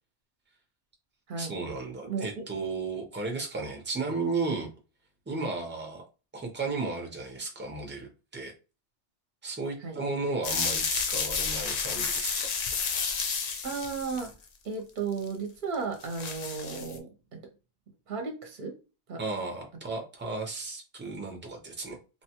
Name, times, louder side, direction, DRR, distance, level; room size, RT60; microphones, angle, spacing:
voice 1, 1.4-4.7 5.3-6.1 6.3-8.5 9.4-12.5 19.2-22.0, right 3 dB, 15° right, 0.4 m, -34 dB
voice 2, 2.1-2.4 9.8-10.0 13.6-14.3 14.6-17.4 18.1-18.7 19.1-19.2, right 5 dB, 50° right, 0.7 m, -34 dB
sound 1, 10.4-14.3 15.1-15.3 15.7-15.8 16.0-17.0, left 5 dB, 70° left, 0.3 m, -31 dB
3.1 x 2.1 x 2.8 m
omnidirectional pair, 1.2 m